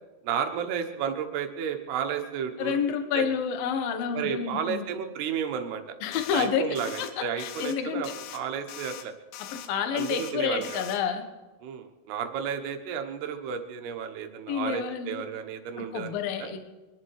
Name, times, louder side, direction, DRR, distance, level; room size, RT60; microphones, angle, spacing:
voice 1, 0.2-2.8 3.1-3.2 4.1-6.0 6.3-9.1 9.9-10.8 11.6-16.1 16.4-16.5, right 7 dB, 75° right, 5 dB, 3.2 m, -32 dB
voice 2, 2.6-4.9 6.0-8.1 9.5-11.2 14.5-15.3 15.8-16.6, left 7 dB, 65° left, 7 dB, 2.8 m, -29 dB
sound 1, 6.1-6.5 6.8-7.1 7.4-7.8 8.0-8.4 8.7-9.0 9.3-9.7 10.0-10.3 10.6-11.0, left 12 dB, 85° left, 3.1 m, -42 dB
24.5 x 11.0 x 4.8 m, 1.2 s
omnidirectional pair, 4.9 m